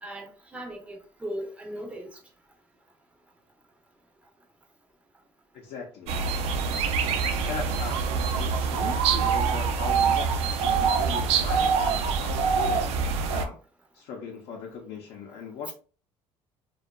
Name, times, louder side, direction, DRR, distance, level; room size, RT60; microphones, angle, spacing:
voice 1, 0.0-2.2 15.7-15.8, equal, 10° right, 0.5 m, -38 dB
voice 2, 5.5-6.2 7.5-12.9 13.3-13.6 13.9-15.7, left 5 dB, 70° left, 0.6 m, -39 dB
sound 1, 6.1-13.5, right 5 dB, 70° right, 0.4 m, -25 dB
2.6 x 2.3 x 2.2 m
cardioid pair, 155°, 11 cm